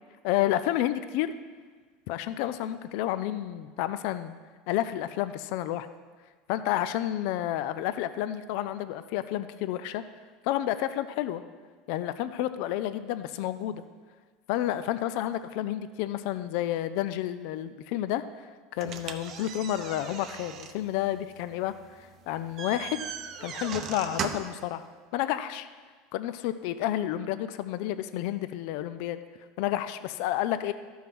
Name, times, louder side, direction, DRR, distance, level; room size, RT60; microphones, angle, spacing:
voice 1, 0.2-1.3 2.1-4.3 4.7-5.9 6.5-10.0 10.4-11.4 11.9-13.8 14.5-21.7 22.3-23.0 23.4-24.8 25.1-25.7 26.1-29.2 29.6-30.7, left 13 dB, 60° left, 12 dB, 0.4 m, -30 dB
sound 1, 18.8-24.6, right 7 dB, 35° right, 0.7 m, -39 dB
13.0 x 5.5 x 6.0 m, 1.5 s
supercardioid pair, 155°, 0 cm